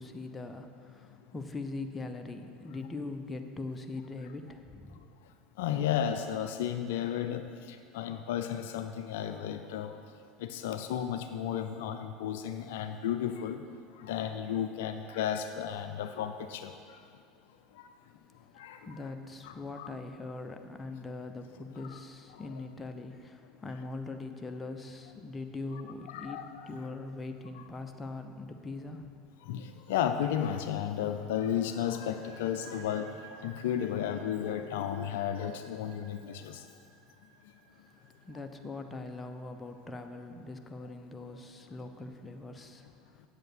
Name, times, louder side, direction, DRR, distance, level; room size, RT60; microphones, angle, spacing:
voice 1, 0.0-5.0 18.2-29.1 37.7-37.9 38.2-43.3, left 3 dB, 20° left, 6 dB, 0.9 m, -42 dB
voice 2, 5.6-9.9 10.4-13.6 14.0-16.7 18.6-18.8 19.4-19.9 21.9-22.0 22.3-22.4 26.1-26.7 27.6-27.7 29.4-36.7, left 9 dB, 70° left, 8 dB, 0.4 m, -33 dB
sound 1, 32.0-39.4, right 4 dB, 75° right, 2.4 m, -55 dB
7.9 x 7.9 x 6.1 m, 2.3 s
hypercardioid pair, 75°, 0 cm